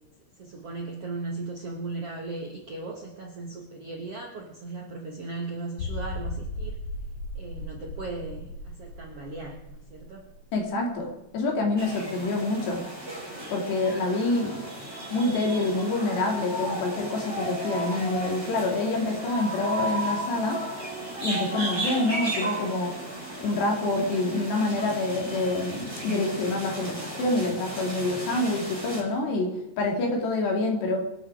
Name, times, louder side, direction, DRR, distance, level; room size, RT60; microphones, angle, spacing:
voice 1, 0.4-6.8 7.4-10.3, right 3 dB, 60° right, 0 dB, 1.7 m, -37 dB
sound 1, 5.8-11.2 11.5-11.6 12.1-12.2, left 1 dB, 50° left, 3.6 m, -37 dB
voice 2, 10.5-12.9 13.5-14.6 15.1-20.6 21.2-22.9 23.4-31.0, left 2 dB, 75° left, 1 dB, 4.8 m, -27 dB
sound 2, 11.8-29.0, right 1 dB, 5° right, 5.0 m, -34 dB
26.0 x 8.7 x 4.9 m, 0.94 s
omnidirectional pair, 5.0 m